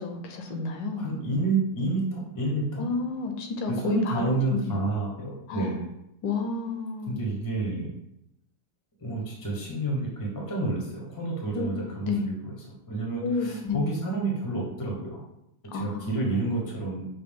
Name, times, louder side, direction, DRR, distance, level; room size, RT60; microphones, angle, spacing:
voice 1, 0.0-1.1 2.8-4.8 5.5-5.7 6.2-7.2 11.5-11.7 12.0-12.3 13.2-13.8 15.7-16.0, left 4 dB, 75° left, 4 dB, 1.3 m, -30 dB
voice 2, 1.0-2.9 3.7-5.8 7.1-7.9 9.0-12.5 12.9-15.2 15.7-17.1, right 2 dB, 20° left, -2 dB, 0.5 m, -29 dB
5.6 x 2.2 x 3.5 m, 0.83 s
omnidirectional pair, 2.1 m